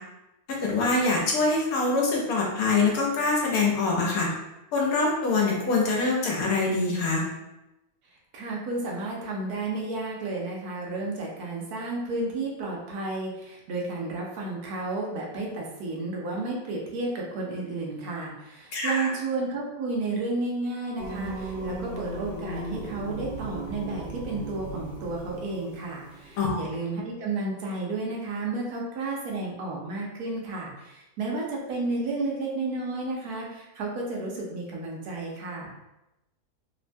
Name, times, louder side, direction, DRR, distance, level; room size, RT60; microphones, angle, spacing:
voice 1, 0.5-4.3 4.7-7.2 18.7-19.1 26.4-26.7, left 3 dB, 75° left, -2 dB, 1.1 m, -24 dB
voice 2, 8.3-35.8, right 2 dB, 75° right, -2 dB, 1.2 m, -32 dB
Singing, 21.0-26.4, right 2 dB, 45° left, 1.0 m, -37 dB
3.1 x 2.2 x 2.5 m, 0.94 s
omnidirectional pair, 1.6 m